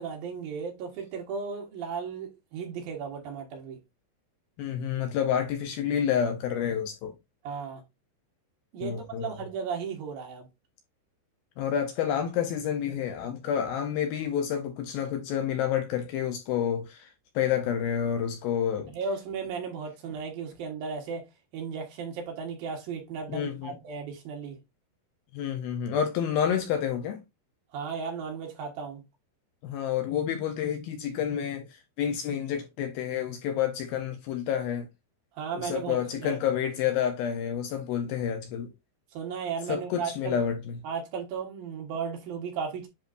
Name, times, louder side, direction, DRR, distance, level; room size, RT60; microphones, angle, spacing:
voice 1, 0.0-3.8 7.4-7.8 8.7-10.5 18.9-21.3 21.5-24.6 27.7-29.0 35.3-36.4 39.1-40.4 40.8-42.9, right 5 dB, 65° right, 3.0 m, -35 dB
voice 2, 4.6-7.2 8.8-9.3 11.6-18.9 23.3-23.7 25.3-27.2 29.6-34.9 35.6-38.7 39.7-40.8, left 9 dB, 75° left, 2.3 m, -29 dB
10.0 x 3.9 x 2.6 m
omnidirectional pair, 4.9 m